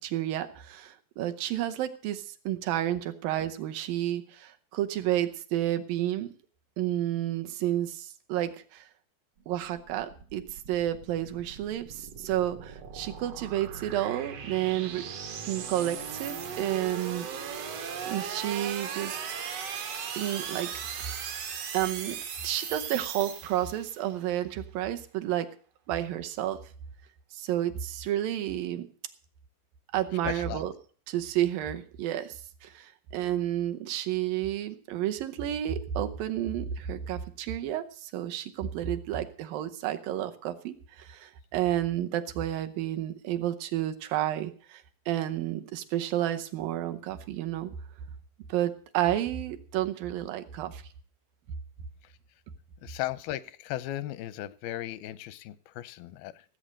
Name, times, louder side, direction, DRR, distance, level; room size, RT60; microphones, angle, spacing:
voice 1, 0.0-6.3 6.8-8.8 9.5-15.0 15.5-17.3 18.1-19.2 20.1-20.7 20.9-21.3 21.7-22.2 22.4-25.5 25.9-26.6 27.3-28.9 29.9-30.7 31.1-47.7 48.5-50.8, right 12 dB, 75° right, 8 dB, 2.5 m, -31 dB
sound 1, 9.4-24.0, right 7 dB, 60° right, 1.9 m, -38 dB
voice 2, 30.2-30.6 52.8-56.4, left 14 dB, 85° left, 17 dB, 2.6 m, -36 dB
16.5 x 8.0 x 6.5 m, 0.43 s
omnidirectional pair, 4.2 m